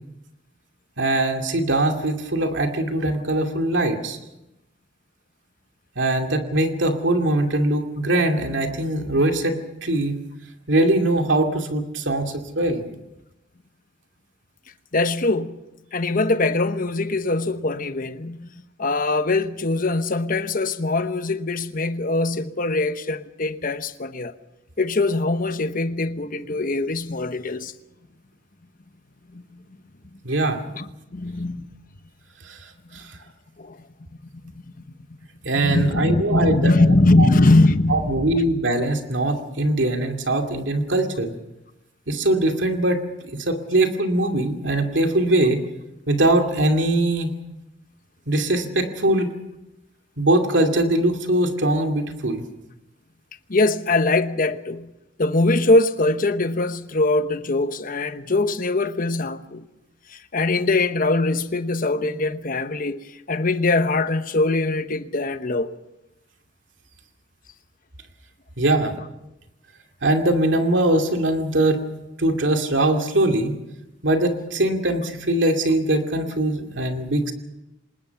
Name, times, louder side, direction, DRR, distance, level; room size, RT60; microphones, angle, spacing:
voice 1, 1.0-4.2 6.0-10.2 10.7-12.8 30.2-30.6 32.4-32.6 32.9-33.2 35.5-36.7 37.2-37.3 37.9-41.3 42.1-43.0 43.3-45.6 46.1-47.3 48.3-49.3 50.2-52.5 68.6-68.9 70.0-71.8 72.2-73.5 74.0-77.3, right 1 dB, 75° right, 2.4 m, -21 dB
voice 2, 14.9-15.6 15.9-18.5 18.8-24.3 24.8-27.7 29.3-29.4 30.7-31.7 32.9-33.0 33.6-33.8 35.5-38.4 53.5-54.9 55.2-59.7 60.1-65.7, left 2 dB, 45° left, 1.0 m, -22 dB
25.5 x 20.0 x 5.9 m
head